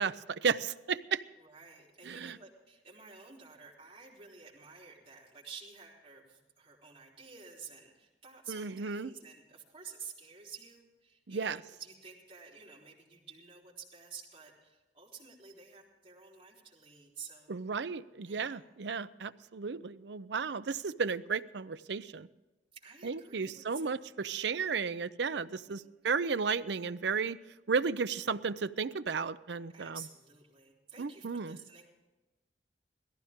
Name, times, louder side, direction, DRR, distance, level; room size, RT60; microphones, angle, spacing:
voice 1, 0.0-1.2 2.0-2.4 8.5-9.1 11.3-11.6 17.5-22.3 23.0-27.4 27.7-30.0 31.0-31.6, right 5 dB, 70° right, 14 dB, 0.6 m, -34 dB
voice 2, 1.4-17.6 18.3-18.6 22.7-23.8 25.7-26.0 29.7-31.9, right 6 dB, 30° right, -4 dB, 4.0 m, -51 dB
17.5 x 15.0 x 3.7 m, 1.1 s
head